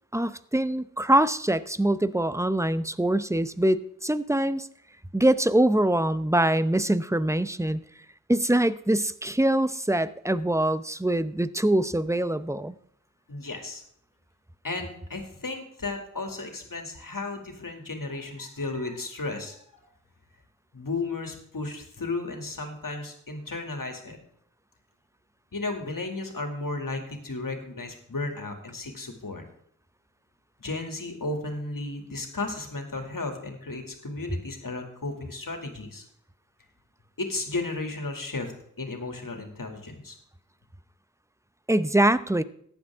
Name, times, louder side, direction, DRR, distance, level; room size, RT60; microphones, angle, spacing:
voice 1, 0.1-4.7 5.1-7.8 8.3-12.8 41.7-42.4, right 1 dB, 10° right, 14 dB, 0.7 m, -24 dB
voice 2, 13.3-13.8 14.6-19.6 20.7-24.2 25.5-29.4 30.6-36.0 37.2-38.5 38.8-40.1, left 3 dB, 80° left, 4 dB, 2.4 m, -34 dB
14.5 x 10.0 x 3.6 m, 0.67 s
wide cardioid pair, 40°, 33 cm